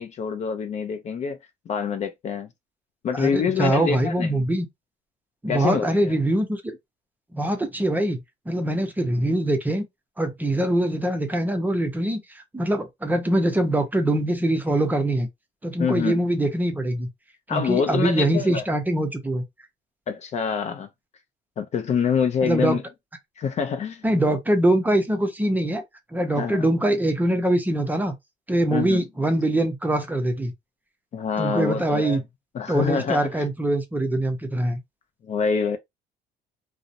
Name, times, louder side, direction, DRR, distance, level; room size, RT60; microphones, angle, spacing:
voice 1, 0.0-1.4 1.7-2.5 3.0-4.4 5.5-6.1 15.8-16.2 17.5-18.6 20.1-20.9 21.6-22.8 23.4-24.0 26.4-26.7 28.7-29.0 31.1-32.2 32.5-33.4 35.2-35.8, left 6 dB, 40° left, 0.4 m, -26 dB
voice 2, 3.1-4.7 5.4-6.8 7.3-9.9 10.2-15.3 15.6-17.1 17.5-19.4 22.4-22.8 24.0-25.8 26.1-28.1 28.5-30.5 31.4-32.2 32.7-34.8, right 1 dB, 10° right, 0.5 m, -23 dB
2.4 x 2.0 x 2.7 m
cardioid pair, 110°, 17 cm